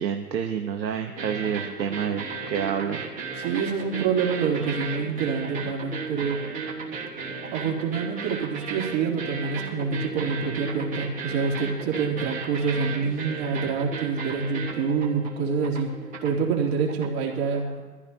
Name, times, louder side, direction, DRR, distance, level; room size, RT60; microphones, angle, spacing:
voice 1, 0.0-3.0, right 8 dB, 85° right, 5 dB, 1.2 m, -28 dB
sound 1, 1.1-17.2, right 4 dB, 15° right, 1.5 m, -35 dB
voice 2, 3.4-6.4 7.5-15.9 16.2-17.8, right 5 dB, 40° right, -1 dB, 3.0 m, -26 dB
22.5 x 15.0 x 2.8 m, 1.3 s
hypercardioid pair, 145°, 50 cm